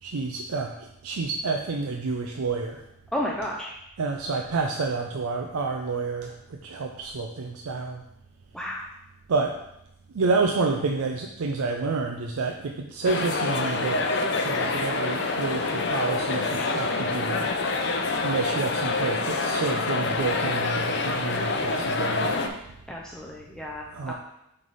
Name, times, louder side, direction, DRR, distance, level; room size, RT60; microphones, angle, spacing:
voice 1, 0.0-2.8 4.0-8.0 9.3-9.5 10.1-14.0 14.4-17.5 18.2-22.3 23.9-24.1, right 4 dB, 85° right, 2 dB, 0.5 m, -29 dB
voice 2, 3.1-3.7 8.5-8.8 22.9-24.1, left 1 dB, 5° left, -2 dB, 0.4 m, -32 dB
sound 1, 13.0-22.5, left 3 dB, 50° left, 0.5 m, -26 dB
7.2 x 3.3 x 4.0 m, 0.82 s
head